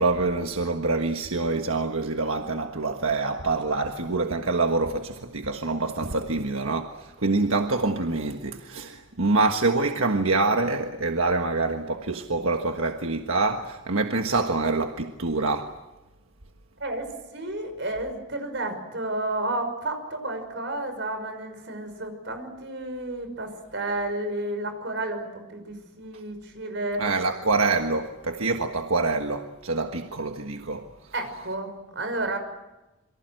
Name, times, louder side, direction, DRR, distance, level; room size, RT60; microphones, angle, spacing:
voice 1, 0.0-15.7 27.0-31.1, right 3 dB, 90° right, 1.5 m, -26 dB
voice 2, 16.8-27.0 31.1-32.4, right 2 dB, 60° right, 5.8 m, -31 dB
27.5 x 23.5 x 7.9 m
head